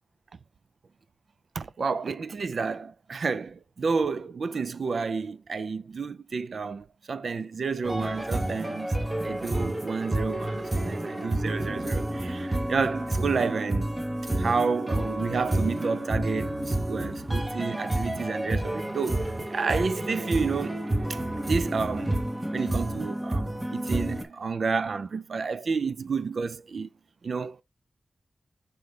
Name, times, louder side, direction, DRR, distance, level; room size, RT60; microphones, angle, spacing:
voice 1, 1.5-8.9 9.2-13.9 14.4-22.2 22.5-26.9 27.2-27.6, right 5 dB, 60° right, 0.4 m, -30 dB
sound 1, 7.8-24.2, right 1 dB, 15° right, 0.9 m, -30 dB
5.8 x 5.4 x 3.2 m
wide cardioid pair, 150°, 0 cm